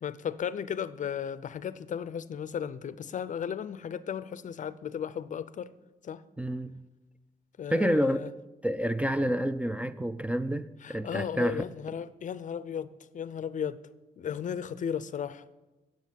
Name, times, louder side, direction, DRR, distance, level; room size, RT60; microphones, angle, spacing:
voice 1, 0.0-5.7 6.0-6.2 7.6-8.3 10.8-12.9 13.1-13.8 14.2-15.4, left 8 dB, 55° left, 0.5 m, -35 dB
voice 2, 6.4-6.8 7.7-8.2 8.6-11.6, equal, 10° right, 0.4 m, -28 dB
9.7 x 7.5 x 9.1 m
wide cardioid pair, 125°, 15 cm